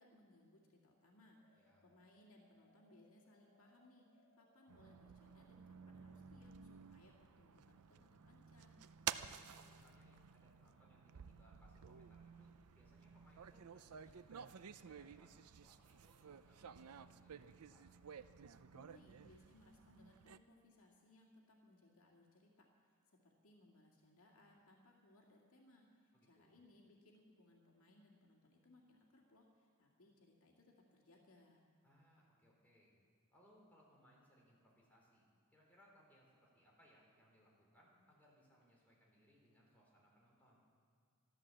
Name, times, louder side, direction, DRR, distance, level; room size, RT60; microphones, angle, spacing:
voice 1, 0.0-8.8 18.7-22.5 23.1-31.6, left 1 dB, 70° left, 0 dB, 2.2 m, -67 dB
sound 1, 1.3-6.2, left 2 dB, 65° right, 4.7 m, -75 dB
sound 2, 4.7-20.4, right 8 dB, 90° right, 0.5 m, -52 dB
voice 2, 9.3-12.5 12.7-14.6 14.8-15.3 15.6-16.2 16.5-17.9 26.1-26.5 31.8-32.9 33.3-40.6, equal, 5° left, -4 dB, 4.2 m, -70 dB
13.5 x 12.5 x 7.6 m, 2.2 s
head